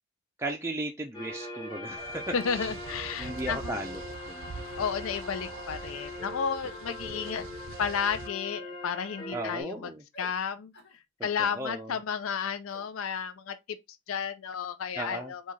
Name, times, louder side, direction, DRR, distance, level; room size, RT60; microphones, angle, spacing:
voice 1, 0.4-2.7 3.2-4.6 9.3-10.0 11.2-12.0 14.9-15.3, right 1 dB, 10° right, 0.4 m, -36 dB
sound 1, 1.1-9.6, left 2 dB, 20° left, 1.0 m, -41 dB
sound 2, 2.0-8.3, right 5 dB, 70° right, 0.5 m, -44 dB
voice 2, 2.3-3.8 4.8-7.4 7.8-9.9 10.2-10.7 11.2-13.5 14.1-15.4, left 7 dB, 75° left, 0.5 m, -32 dB
sound 3, 6.7-6.9 7.2-7.5 8.2-8.5 8.9-9.2 10.1-10.4 10.7-11.0 12.7-12.9, equal, 50° left, 1.1 m, -53 dB
4.7 x 2.4 x 4.0 m
head